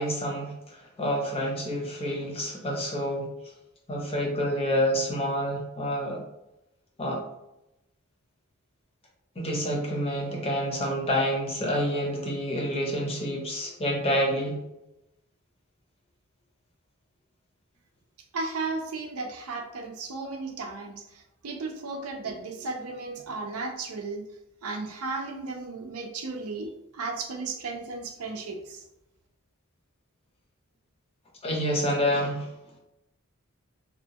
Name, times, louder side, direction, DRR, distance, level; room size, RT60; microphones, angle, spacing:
voice 1, 0.0-3.3 3.9-6.2 7.0-7.2 9.4-14.6 31.4-32.5, equal, 25° left, -1 dB, 0.6 m, -28 dB
voice 2, 18.3-24.2 24.6-28.8, right 3 dB, 75° right, 3 dB, 0.5 m, -35 dB
2.7 x 2.2 x 2.8 m, 0.90 s
head